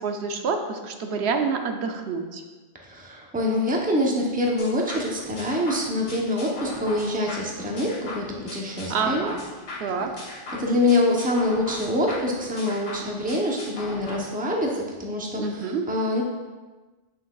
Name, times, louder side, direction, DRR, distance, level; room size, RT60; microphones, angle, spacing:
voice 1, 0.0-2.4 8.9-9.4 9.8-10.1 15.4-15.8, right 5 dB, 80° right, 5 dB, 0.9 m, -27 dB
voice 2, 2.8-9.3 10.5-16.2, left 1 dB, 10° right, -1 dB, 0.7 m, -25 dB
sound 1, 4.6-14.2, left 2 dB, 65° left, 1.3 m, -38 dB
7.8 x 5.8 x 2.3 m, 1.3 s
omnidirectional pair, 1.1 m